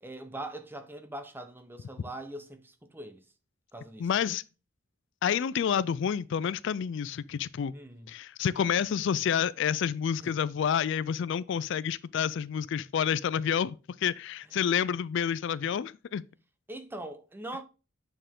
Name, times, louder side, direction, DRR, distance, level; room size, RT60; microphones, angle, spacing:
voice 1, 0.0-3.2 3.7-4.1 7.7-8.1 10.2-10.3 16.7-17.6, right 1 dB, 10° right, 0.8 m, -42 dB
voice 2, 4.0-4.4 5.2-7.7 8.1-16.2, left 8 dB, 65° left, 0.3 m, -29 dB
8.9 x 4.5 x 3.6 m
head